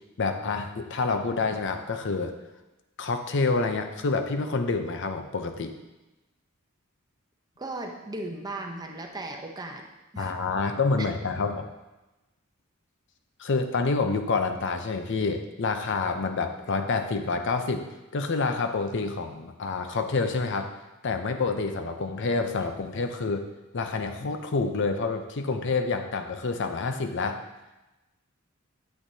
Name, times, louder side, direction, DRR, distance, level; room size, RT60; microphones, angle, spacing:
voice 1, 0.2-2.3 3.0-5.7 10.2-11.7 13.4-17.9 18.1-20.7 21.0-23.5 23.7-27.4, left 4 dB, 60° left, 7 dB, 0.6 m, -28 dB
voice 2, 7.6-9.9 10.1-10.3, right 2 dB, 20° right, 2 dB, 0.7 m, -36 dB
9.0 x 8.1 x 2.8 m, 1.0 s
head